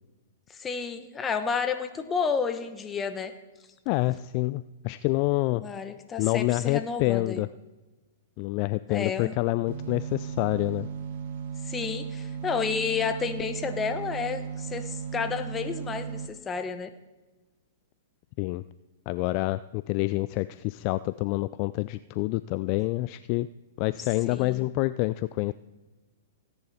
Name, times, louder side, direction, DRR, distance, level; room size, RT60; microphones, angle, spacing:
voice 1, 0.5-3.3 5.5-7.4 8.9-9.4 11.6-16.9 24.3-24.7, left 5 dB, 20° left, 9 dB, 1.1 m, -31 dB
voice 2, 3.9-5.6 6.2-7.5 8.4-10.9 18.4-18.6 19.1-23.5 23.8-25.5, left 19 dB, 45° left, 15 dB, 0.3 m, -27 dB
sound 1, 9.7-16.3, right 7 dB, 55° right, 1.3 m, -36 dB
17.0 x 9.7 x 4.2 m, 1.2 s
hypercardioid pair, 115°, 0 cm